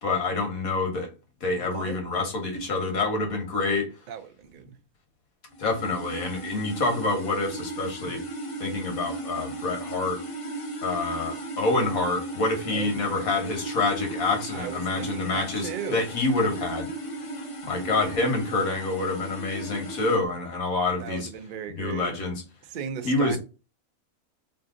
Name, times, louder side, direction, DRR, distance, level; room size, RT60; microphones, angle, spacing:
voice 1, 0.0-1.1 1.4-3.9 5.6-8.2 8.6-10.2 10.8-16.9 17.6-21.3 21.7-22.4 23.0-23.4, left 3 dB, 75° left, 1.5 m, -27 dB
voice 2, 1.4-2.0 4.1-4.8 12.7-13.4 14.5-16.1 21.0-22.1 22.6-23.4, right 8 dB, 65° right, 0.4 m, -37 dB
sound 1, 5.5-20.2, right 2 dB, 30° left, 0.6 m, -36 dB
3.3 x 2.6 x 3.6 m
omnidirectional pair, 1.5 m